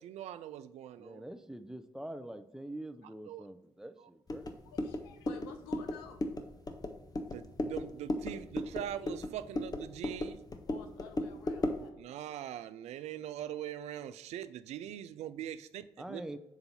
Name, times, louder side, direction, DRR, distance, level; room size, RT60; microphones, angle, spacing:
voice 1, 0.0-1.2 3.3-3.5 4.0-4.1 7.2-10.4 12.0-16.4, right 11 dB, 70° right, 13 dB, 0.4 m, -42 dB
voice 2, 1.0-4.6 16.0-16.4, right 1 dB, 5° right, 9 dB, 0.6 m, -45 dB
sound 1, 4.3-11.9, left 1 dB, 30° left, 0.8 m, -37 dB
voice 3, 4.6-6.2 10.7-11.9, left 7 dB, 90° left, 7 dB, 0.5 m, -51 dB
7.0 x 2.6 x 5.5 m, 0.93 s
hypercardioid pair, 40°, 12 cm